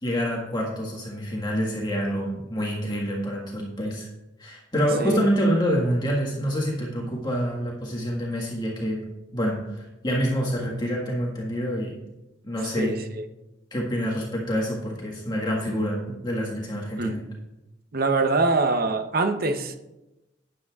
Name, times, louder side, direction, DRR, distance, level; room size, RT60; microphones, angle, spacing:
voice 1, 0.0-4.1 4.4-9.0 9.3-12.0 12.4-13.0 13.7-17.2, equal, 25° left, -3 dB, 1.6 m, -27 dB
voice 2, 12.8-13.2 17.0-17.2 17.9-19.8, right 3 dB, 55° right, 8 dB, 0.8 m, -24 dB
13.0 x 9.7 x 2.4 m, 1.0 s
head